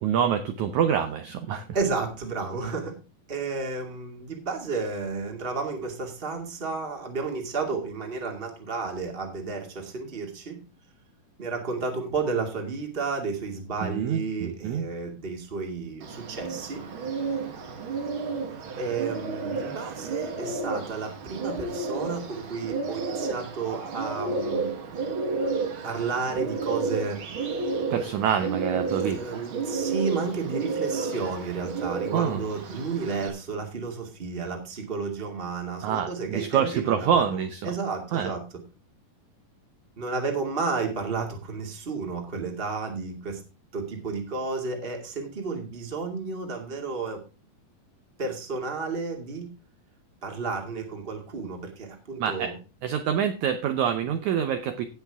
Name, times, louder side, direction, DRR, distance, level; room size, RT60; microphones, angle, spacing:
voice 1, 0.0-1.7 13.8-14.8 27.9-29.4 32.1-32.4 35.8-37.7 38.1-38.3 52.2-52.5 52.8-54.9, right 8 dB, 70° right, 7 dB, 1.9 m, -26 dB
voice 2, 1.7-2.9 3.3-10.6 11.4-16.8 18.7-24.7 25.8-27.2 28.9-37.4 37.6-38.4 40.0-43.4 43.7-47.2 48.2-49.5 50.2-52.5, right 4 dB, 20° right, 2 dB, 1.8 m, -32 dB
Bird, 16.0-33.3, right 4 dB, 55° right, 1.5 m, -32 dB
17.5 x 6.1 x 3.6 m, 0.32 s
omnidirectional pair, 4.3 m